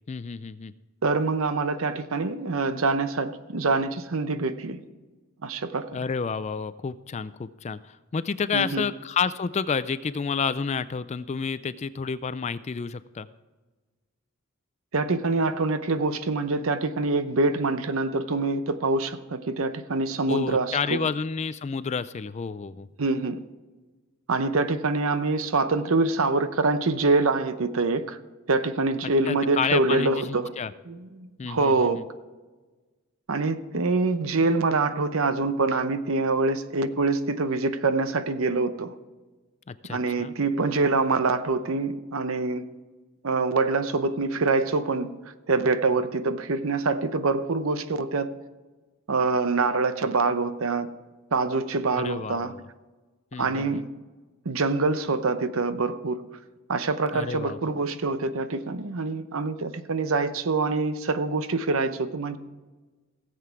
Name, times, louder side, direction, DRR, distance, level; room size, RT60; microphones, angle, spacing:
voice 1, 0.1-0.7 5.9-13.3 20.3-22.9 29.3-30.7 31.4-32.0 39.7-40.3 52.0-52.6 53.3-53.8 57.1-57.6, left 5 dB, 30° left, 0.3 m, -30 dB
voice 2, 1.0-4.8 5.4-5.9 8.5-8.9 14.9-21.0 23.0-23.4 24.3-28.2 28.5-30.5 30.9-32.0 33.3-38.9 39.9-42.7 43.2-45.2 45.5-48.3 49.1-50.9 51.3-52.5 53.4-53.9 54.4-56.2 56.7-62.4, right 3 dB, 65° right, 0.7 m, -25 dB
17.5 x 7.7 x 4.6 m
head